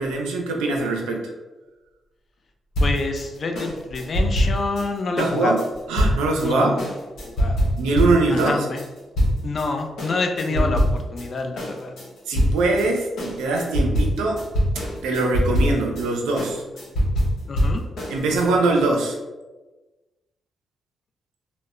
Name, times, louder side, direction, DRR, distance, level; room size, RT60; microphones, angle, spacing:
voice 1, 0.0-1.3 5.2-5.6 5.9-6.7 7.8-8.7 10.5-10.7 12.3-14.4 15.0-16.6 18.1-19.2, right 3 dB, 85° right, 1 dB, 0.4 m, -22 dB
sound 1, 2.7-9.7 10.0-11.3 11.6-18.5, equal, 75° left, 0.8 m, -24 dB
voice 2, 2.8-5.6 6.4-6.8 7.2-7.6 8.3-8.8 9.4-11.9 17.5-17.8, left 3 dB, 55° left, 4 dB, 0.4 m, -27 dB
2.0 x 2.0 x 3.5 m, 1.2 s
supercardioid pair, 45°, 0 cm